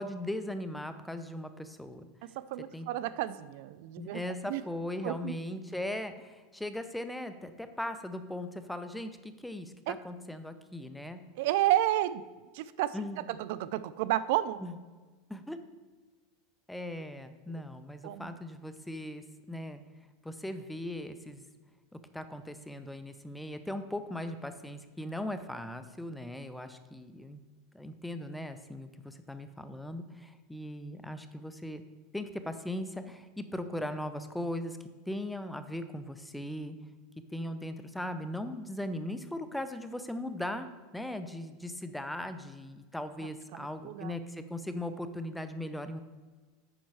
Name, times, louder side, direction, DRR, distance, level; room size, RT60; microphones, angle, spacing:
voice 1, 0.0-2.1 2.7-2.9 4.0-11.2 12.9-13.2 14.6-14.7 15.3-15.6 16.7-19.8 20.2-21.4 22.1-27.4 27.7-31.8 32.1-34.8 35.1-36.8 37.3-46.0, left 1 dB, 5° left, 9 dB, 0.6 m, -39 dB
voice 2, 2.4-4.2 4.5-4.6 5.0-5.3 9.9-10.0 11.4-12.2 12.5-13.0 13.3-14.6 18.0-18.3 43.5-44.1, right 14 dB, 65° right, 15 dB, 0.3 m, -31 dB
8.8 x 5.4 x 4.7 m, 1.3 s
supercardioid pair, 135°, 0 cm